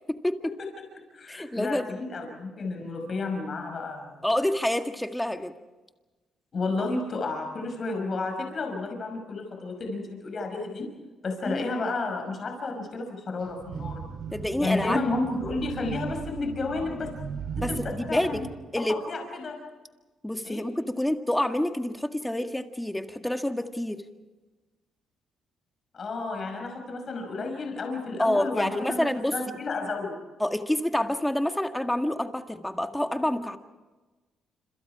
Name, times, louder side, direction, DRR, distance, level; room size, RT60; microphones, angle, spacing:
voice 1, 0.1-0.6 1.3-1.9 4.2-5.5 11.5-11.7 14.3-15.0 17.6-18.5 18.7-18.9 20.2-24.0 28.2-29.3 30.4-33.6, left 1 dB, 5° left, 6 dB, 1.9 m, -28 dB
voice 2, 0.9-4.3 6.5-10.9 11.2-14.0 14.6-17.1 17.6-18.5 18.8-19.6 20.4-20.6 25.9-30.2, left 3 dB, 45° left, 3 dB, 5.8 m, -32 dB
sound 1, 13.4-18.5, right 6 dB, 75° right, 3.8 m, -37 dB
27.5 x 27.0 x 4.9 m, 1.2 s
cardioid pair, 90°, 0 cm